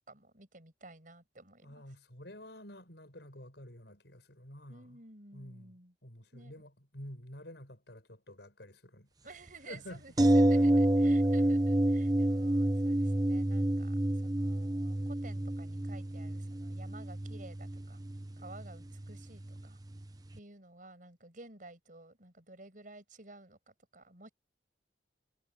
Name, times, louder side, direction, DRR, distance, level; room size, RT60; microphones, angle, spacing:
voice 1, 0.0-1.8 4.7-5.9 6.3-6.5 9.2-18.0 18.4-19.8 20.3-24.3, right 2 dB, 45° right, 6.8 m, -53 dB
voice 2, 1.6-5.0 5.3-9.3 9.7-10.0, left 1 dB, 70° left, 6.6 m, -50 dB
sound 1, 10.2-20.0 20.3-20.4, right 1 dB, 20° right, 0.9 m, -29 dB
head